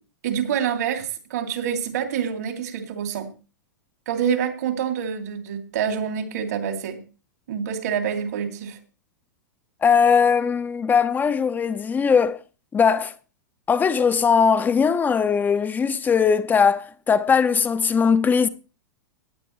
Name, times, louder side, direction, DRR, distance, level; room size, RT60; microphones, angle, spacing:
voice 1, 0.2-3.3 4.1-7.0 7.5-8.8, right 8 dB, 65° right, 2.8 m, -26 dB
voice 2, 9.8-12.4 12.7-13.1 13.7-18.5, left 6 dB, 20° left, 0.9 m, -20 dB
17.5 x 9.4 x 3.2 m
figure-of-eight pair, 100°, 10 cm